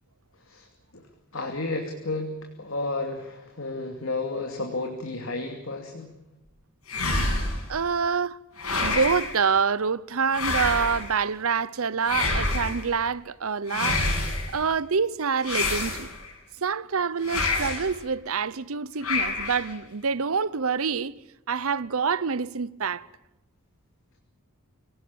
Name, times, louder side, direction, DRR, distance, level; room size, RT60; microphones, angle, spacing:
voice 1, 1.3-6.1, left 2 dB, 65° left, 2.7 m, -32 dB
sound 1, 6.9-7.7 8.6-9.3 10.3-11.1 12.0-12.8 13.7-14.5 15.4-16.3 17.2-17.9 19.0-19.7, left 3 dB, 85° left, 7.9 m, -27 dB
voice 2, 7.7-8.4 8.8-14.0 14.5-16.1 16.6-21.1 21.5-23.1, right 5 dB, 75° right, 0.8 m, -26 dB
25.5 x 18.0 x 8.6 m
head